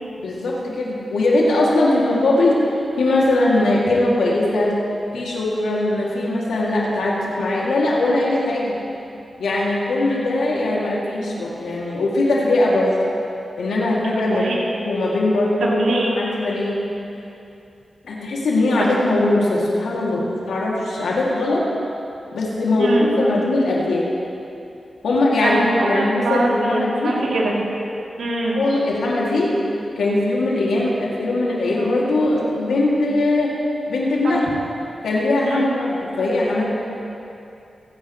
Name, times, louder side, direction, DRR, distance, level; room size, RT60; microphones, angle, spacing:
voice 1, 0.2-4.7 5.1-8.7 9.4-12.9 13.6-14.5 14.8-15.8 16.2-16.8 18.0-21.6 22.3-24.1 25.0-27.2 28.6-29.5 30.0-33.5 33.9-34.4 35.0-36.7, left 2 dB, 90° left, -5 dB, 2.6 m, -20 dB
voice 2, 14.3-14.6 15.7-16.2 22.8-23.1 25.4-27.5 28.2-28.6 34.2-34.4 35.4-35.7, right 2 dB, 90° right, -6 dB, 3.1 m, -23 dB
28.0 x 9.9 x 3.2 m, 2.7 s
cardioid pair, 50°, 0 cm